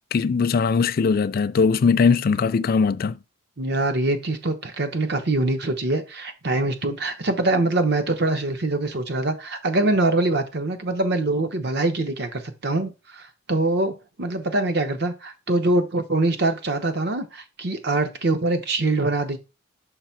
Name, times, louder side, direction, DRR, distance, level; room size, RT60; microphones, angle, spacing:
voice 1, 0.1-3.2, left 5 dB, 45° left, 0.4 m, -20 dB
voice 2, 3.6-19.4, right 2 dB, 55° right, 0.9 m, -24 dB
5.8 x 3.2 x 5.8 m
head